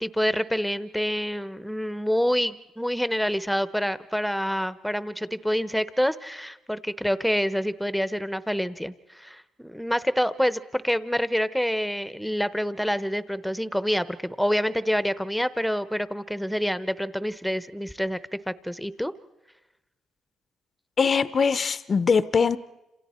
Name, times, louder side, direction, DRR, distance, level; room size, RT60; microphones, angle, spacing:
voice 1, 0.0-18.2 18.5-19.1, equal, ahead, 0.8 m, -27 dB
voice 2, 21.0-22.6, left 5 dB, 40° left, 0.7 m, -22 dB
29.5 x 27.0 x 4.3 m
cardioid pair, 90°, 0 cm